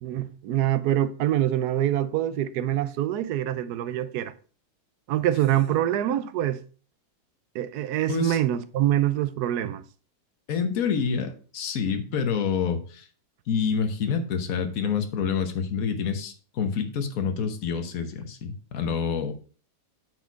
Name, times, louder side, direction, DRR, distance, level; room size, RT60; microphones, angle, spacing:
voice 1, 0.0-4.3 5.1-6.6 7.5-9.8, right 12 dB, 85° right, 1.1 m, -25 dB
voice 2, 8.1-8.4 10.5-13.1 13.5-19.3, left 6 dB, 65° left, 1.4 m, -27 dB
8.1 x 4.6 x 4.6 m
omnidirectional pair, 1.7 m